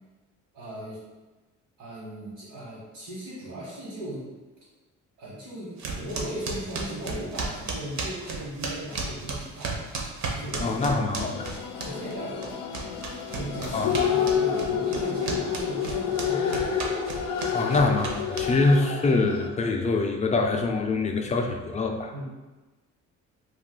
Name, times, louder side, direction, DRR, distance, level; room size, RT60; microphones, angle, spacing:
voice 1, 0.5-1.0 1.8-4.2 5.2-9.8 10.3-10.8 11.8-12.8 13.3-16.9 17.6-17.8 22.1-22.2, right 1 dB, 85° right, -8 dB, 1.2 m, -37 dB
sound 1, 5.8-12.1 12.4-18.8, right 3 dB, 65° right, 0.7 m, -34 dB
voice 2, 10.6-11.5 13.7-13.9 17.5-22.1, left 3 dB, 25° left, 3 dB, 0.4 m, -24 dB
sound 2, 11.2-19.5, left 8 dB, 90° left, 0.4 m, -29 dB
2.4 x 2.3 x 3.7 m, 1.2 s
cardioid pair, 90°, 30 cm